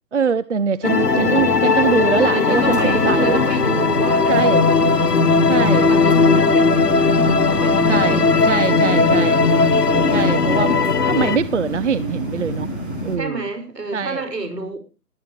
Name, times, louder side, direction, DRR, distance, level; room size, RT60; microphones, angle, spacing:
voice 1, 0.1-3.4 4.3-4.6 5.5-5.9 7.9-9.4 9.9-12.7 13.0-13.4 13.9-14.2, right 6 dB, 50° right, 0.7 m, -23 dB
sound 1, 0.8-11.4, left 4 dB, 75° left, 1.8 m, -17 dB
voice 2, 1.1-1.6 2.3-5.1 5.7-9.1 10.4-10.6 13.1-14.8, right 3 dB, 85° right, 6.0 m, -30 dB
sound 2, 2.5-13.2, equal, 5° right, 1.0 m, -28 dB
20.0 x 11.0 x 3.2 m
figure-of-eight pair, 165°, 48 cm